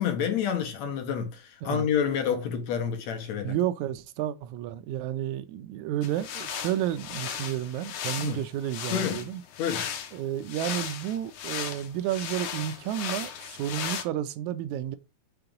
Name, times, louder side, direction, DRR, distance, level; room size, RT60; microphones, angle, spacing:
voice 1, 0.0-3.6 8.2-8.4 8.9-9.3 9.6-9.9, left 8 dB, 70° left, 2.3 m, -28 dB
voice 2, 3.4-9.4 10.1-15.0, right 12 dB, 80° right, 1.9 m, -31 dB
sound 1, 6.0-14.0, left 8 dB, 85° left, 2.4 m, -36 dB
5.9 x 3.7 x 5.1 m
omnidirectional pair, 3.4 m